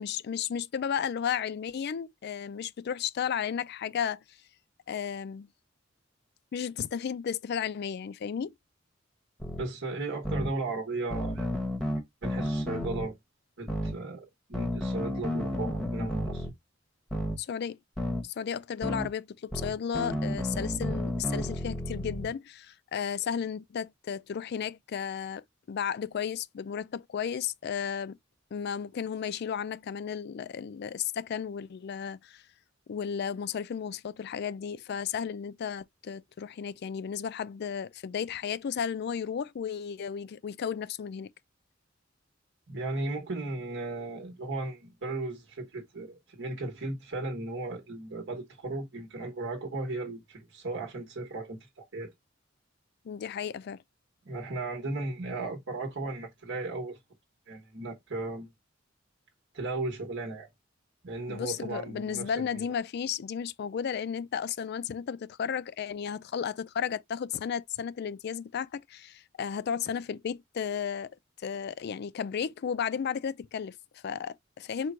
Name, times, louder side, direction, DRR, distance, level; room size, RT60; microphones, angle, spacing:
voice 1, 0.0-4.4 4.9-5.5 6.5-8.5 17.4-17.8 18.2-28.2 28.5-32.4 32.9-41.3 53.0-53.8 61.3-71.1 71.4-74.9, left 7 dB, 55° left, 0.3 m, -34 dB
sound 1, 9.4-9.6 10.2-10.5 11.1-13.1 13.7-13.9 14.5-16.5 17.1-17.4 18.0-18.2 18.8-19.1 19.5-22.3, left 1 dB, 5° left, 0.9 m, -32 dB
voice 2, 9.6-11.5 12.2-13.1 13.6-16.5 42.7-52.1 54.2-57.0 57.5-58.5 59.5-60.5 61.0-62.7, right 2 dB, 65° right, 1.1 m, -36 dB
4.5 x 2.2 x 3.7 m
head